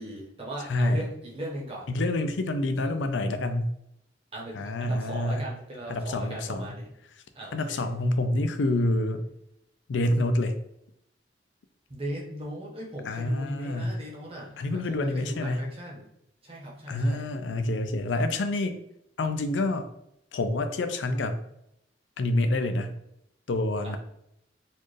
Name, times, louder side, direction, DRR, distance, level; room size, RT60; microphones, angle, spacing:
voice 1, 0.0-1.9 4.3-6.9 7.3-7.8 11.9-16.1 16.4-17.3 23.8-24.0, right 1 dB, 30° right, -3 dB, 1.0 m, -38 dB
voice 2, 0.7-1.0 1.9-3.7 4.5-5.4 5.9-6.7 7.5-9.2 9.9-10.6 13.1-14.0 14.6-15.6 16.9-18.8 19.2-19.9 20.3-21.4 22.2-22.9 23.5-24.0, left 1 dB, 80° left, 8 dB, 0.4 m, -27 dB
4.2 x 2.4 x 3.2 m, 0.80 s
head